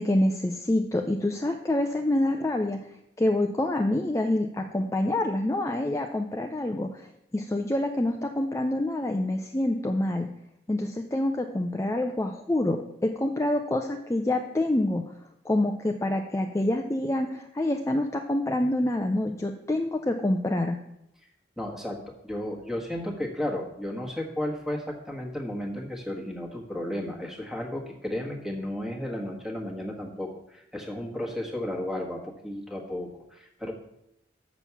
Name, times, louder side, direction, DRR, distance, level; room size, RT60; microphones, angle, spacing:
voice 1, 0.0-2.8 3.2-7.1 7.3-10.3 10.7-15.0 15.4-20.8, left 1 dB, 15° left, 4 dB, 0.5 m, -26 dB
voice 2, 21.6-22.0 22.2-33.7, left 1 dB, ahead, 0 dB, 1.4 m, -33 dB
7.3 x 6.0 x 6.9 m, 0.81 s
head